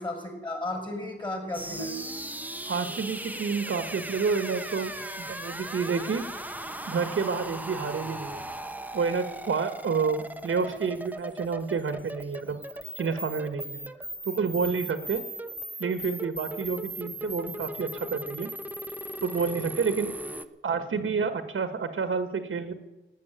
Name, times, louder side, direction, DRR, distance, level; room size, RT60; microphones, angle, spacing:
voice 1, 0.0-2.0 10.9-11.0, left 1 dB, 20° left, 3 dB, 5.6 m, -34 dB
sound 1, 1.5-20.4, right 1 dB, 10° right, 1.0 m, -38 dB
voice 2, 2.7-6.2 6.9-8.4 8.9-12.6 13.0-13.8 14.2-15.2 15.8-18.5 19.2-20.1 20.6-22.7, right 5 dB, 75° right, 8 dB, 1.6 m, -29 dB
17.0 x 9.4 x 9.1 m, 1.1 s
wide cardioid pair, 85°, 21 cm